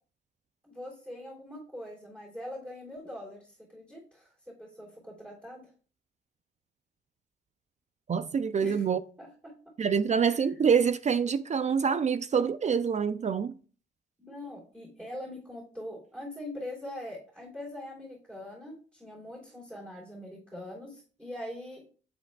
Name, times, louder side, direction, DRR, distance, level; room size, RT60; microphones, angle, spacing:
voice 1, 0.6-5.7 8.6-8.8 9.2-9.5 10.1-10.5 14.2-21.9, left 1 dB, 10° right, 3.3 m, -43 dB
voice 2, 8.1-9.0 9.8-13.5, right 6 dB, 35° right, 0.4 m, -26 dB
9.2 x 7.7 x 2.3 m
cardioid pair, 90°, 20 cm